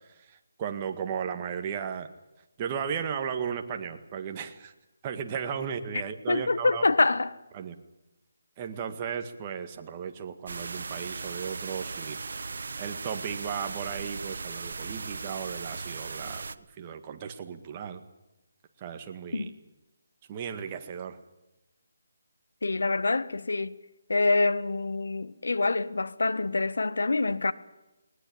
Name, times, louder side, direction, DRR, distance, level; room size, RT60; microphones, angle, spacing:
voice 1, 0.2-2.1 2.6-4.7 5.0-6.8 7.5-7.7 8.6-12.2 12.8-18.0 18.8-19.5 20.3-21.2, right 7 dB, 20° right, 1.9 m, -35 dB
voice 2, 6.3-7.4 19.3-19.5 22.6-23.8 24.1-27.5, left 3 dB, 80° left, 1.4 m, -26 dB
sound 1, 10.5-16.5, right 4 dB, 65° right, 1.1 m, -38 dB
20.5 x 19.5 x 8.7 m
hypercardioid pair, 170°, 0 cm